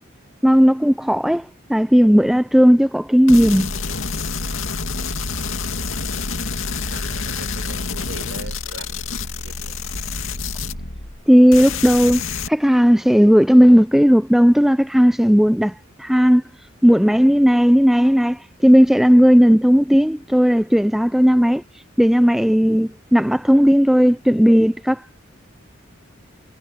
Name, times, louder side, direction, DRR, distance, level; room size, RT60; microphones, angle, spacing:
voice 1, 0.4-3.7 11.3-12.2 12.5-15.7 16.0-16.4 16.8-21.6 22.0-25.2, equal, ahead, 0.4 m, -14 dB
sound 1, 3.3-11.2 11.5-12.5, left 4 dB, 85° left, 2.4 m, -27 dB
voice 2, 6.9-9.7, right 2 dB, 65° right, 7.0 m, -41 dB
head